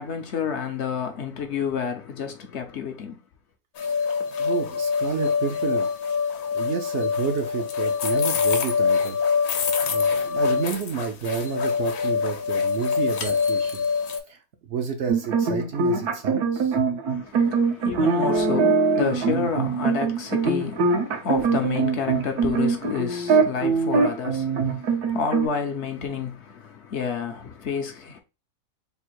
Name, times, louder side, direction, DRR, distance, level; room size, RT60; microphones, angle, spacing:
voice 1, 0.0-3.2 17.1-28.2, left 6 dB, 60° left, 0.8 m, -30 dB
sound 1, 3.8-14.2, left 6 dB, 80° left, 1.2 m, -25 dB
voice 2, 4.4-5.9 6.5-9.2 9.5-13.8 14.3-14.4 14.7-16.8 17.3-17.5, right 6 dB, 60° right, 0.8 m, -30 dB
sound 2, 15.1-25.5, right 4 dB, 80° right, 1.4 m, -22 dB
3.5 x 2.4 x 4.4 m
omnidirectional pair, 1.6 m